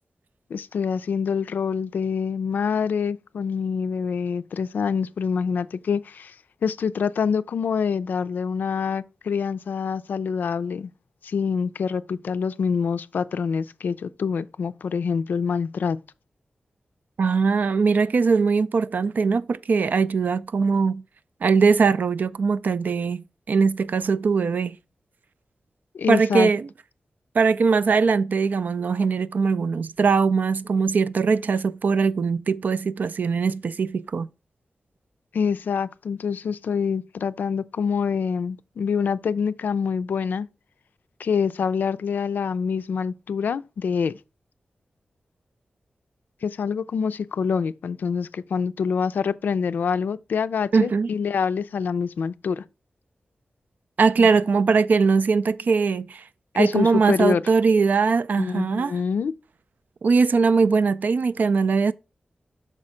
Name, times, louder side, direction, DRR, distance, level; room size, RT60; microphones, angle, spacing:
voice 1, 0.5-6.3 6.6-10.9 11.2-16.0 25.9-26.5 35.3-40.5 41.2-44.2 46.4-52.6 54.2-54.3 56.5-57.4 58.4-59.3, left 6 dB, 90° left, 0.3 m, -26 dB
voice 2, 17.2-21.0 21.4-24.8 26.1-26.7 27.3-34.3 50.7-51.1 54.0-56.2 56.6-58.9 60.0-61.9, right 5 dB, 70° right, 0.4 m, -21 dB
6.3 x 4.3 x 4.9 m
wide cardioid pair, 80°, 3 cm